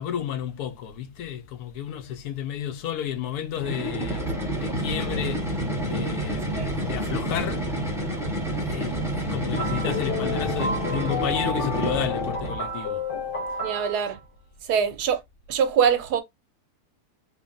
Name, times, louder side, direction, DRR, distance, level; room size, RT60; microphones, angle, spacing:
voice 1, 0.0-5.5 5.8-7.8 8.6-13.1, left 9 dB, 75° left, 1.2 m, -32 dB
sound 1, 3.5-12.7, right 1 dB, ahead, 0.7 m, -29 dB
sound 2, 9.5-14.1, left 3 dB, 40° left, 0.9 m, -30 dB
voice 2, 13.6-14.2 14.6-15.2 15.5-16.2, right 7 dB, 80° right, 1.2 m, -23 dB
3.6 x 2.2 x 3.7 m
omnidirectional pair, 1.7 m